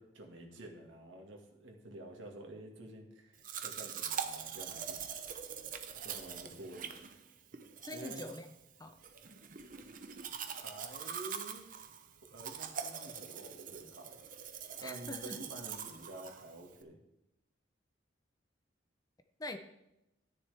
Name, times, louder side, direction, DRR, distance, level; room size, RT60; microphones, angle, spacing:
voice 1, 0.0-5.0 6.0-6.9 7.9-8.2 10.5-11.7 12.3-14.2 14.8-17.0, right 1 dB, 85° right, 1 dB, 1.9 m, -49 dB
Domestic sounds home sounds, 3.4-16.8, right 7 dB, 45° right, 0.7 m, -43 dB
voice 2, 7.8-8.5 8.8-9.0 14.8-15.4 19.4-19.6, left 2 dB, 20° left, 8 dB, 0.6 m, -44 dB
12.5 x 10.0 x 3.5 m, 0.89 s
head